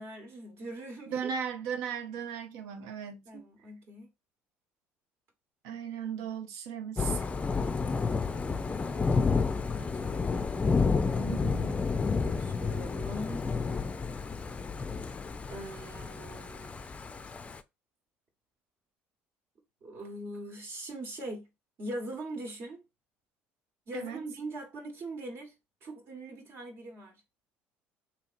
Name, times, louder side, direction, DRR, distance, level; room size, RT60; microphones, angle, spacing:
voice 1, 0.0-1.3 3.2-4.1 7.7-10.2 12.2-13.5 15.5-16.7 19.8-21.5 21.8-22.8 23.9-25.6 25.8-27.2, right 1 dB, 55° right, 1.1 m, -42 dB
voice 2, 1.1-3.4 5.6-7.3 11.2-11.8 23.9-24.2, right 7 dB, 85° right, 0.5 m, -37 dB
Thunder / Rain, 7.0-17.6, left 4 dB, 25° left, 0.4 m, -30 dB
2.8 x 2.8 x 2.4 m
supercardioid pair, 80°, 5 cm